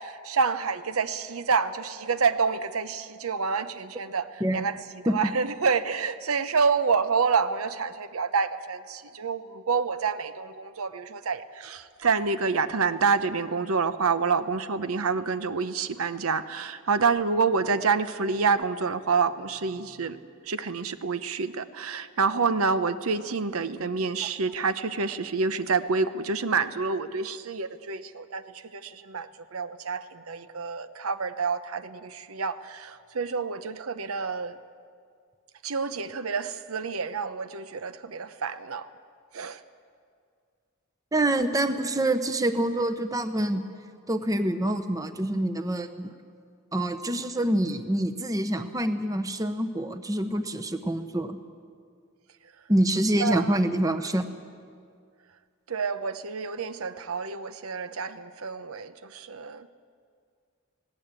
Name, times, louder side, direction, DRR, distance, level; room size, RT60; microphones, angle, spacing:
voice 1, 0.0-20.2 20.4-34.6 35.6-38.9 39.3-39.6 53.2-53.6 55.7-59.7, right 5 dB, 85° right, 0.8 m, -28 dB
voice 2, 41.1-43.6 44.1-46.1 46.7-51.4 52.7-54.3, right 1 dB, 15° right, 0.8 m, -26 dB
19.0 x 17.0 x 8.9 m
head